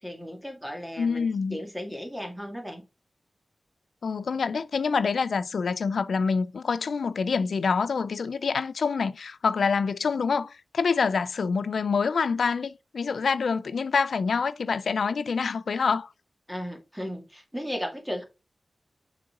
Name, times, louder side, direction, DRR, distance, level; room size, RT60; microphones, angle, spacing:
voice 1, 0.0-2.8 16.5-18.2, equal, 5° right, 2.0 m, -35 dB
voice 2, 1.0-1.6 4.0-16.1, left 5 dB, 85° left, 0.4 m, -26 dB
6.5 x 4.1 x 3.7 m
wide cardioid pair, 80°, 0 cm